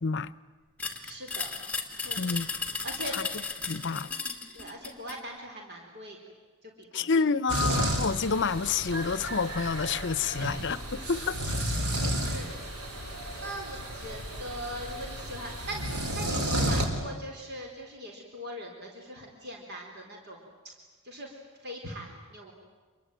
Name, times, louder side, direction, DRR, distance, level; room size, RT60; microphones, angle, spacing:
voice 1, 0.0-0.3 2.2-2.5 3.1-3.2 3.7-4.1 6.9-10.8 11.1-11.4, left 5 dB, 55° left, 0.8 m, -28 dB
sound 1, 0.8-5.2, left 4 dB, 5° left, 2.4 m, -35 dB
voice 2, 1.0-1.5 2.0-2.4 2.8-3.2 4.5-6.2 6.8-7.2 10.4-10.6 11.4-12.5 13.4-20.7 21.0-22.5, equal, 50° right, 4.1 m, -41 dB
sound 2, 7.5-16.8, right 1 dB, 90° right, 4.5 m, -32 dB
27.5 x 22.5 x 9.1 m
head